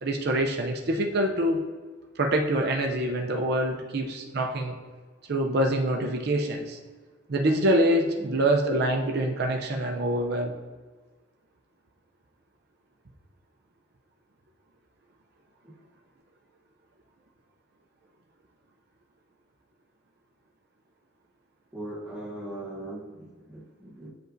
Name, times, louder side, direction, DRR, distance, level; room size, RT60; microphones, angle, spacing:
voice 1, 0.0-1.7 2.2-4.8 5.3-6.8 7.3-10.5, right 1 dB, 50° right, 2 dB, 0.5 m, -25 dB
voice 2, 21.7-24.1, right 1 dB, 5° right, -7 dB, 1.0 m, -39 dB
7.7 x 5.2 x 2.6 m, 1.3 s
head